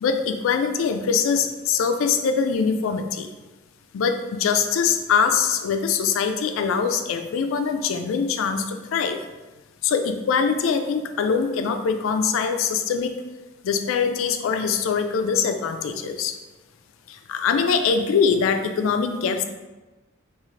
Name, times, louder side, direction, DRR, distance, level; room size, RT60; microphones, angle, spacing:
voice 1, 0.0-3.3 3.9-9.2 9.8-13.1 13.6-16.4 17.1-19.4, left 6 dB, 80° left, 7 dB, 0.3 m, -23 dB
3.7 x 2.4 x 3.1 m, 1.2 s
head